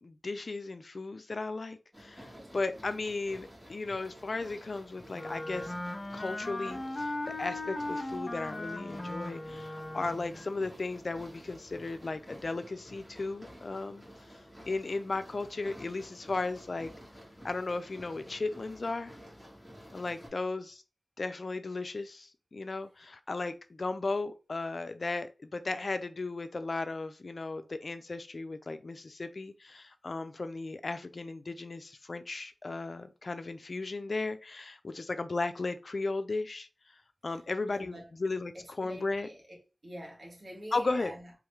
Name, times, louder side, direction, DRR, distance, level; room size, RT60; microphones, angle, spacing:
voice 1, 0.0-5.7 6.1-14.0 14.7-16.9 17.4-19.1 19.9-20.8 21.2-36.7 37.2-38.5 38.8-39.3 40.7-41.1, left 3 dB, 65° left, 0.4 m, -35 dB
sound 1, 1.9-20.3, equal, 10° right, 1.8 m, -51 dB
Wind instrument woodwind instrument, 5.1-10.5, left 2 dB, 40° left, 0.8 m, -38 dB
voice 2, 37.7-38.1 38.5-41.3, equal, 60° right, 1.7 m, -47 dB
3.6 x 3.1 x 3.1 m
wide cardioid pair, 60°, 0 cm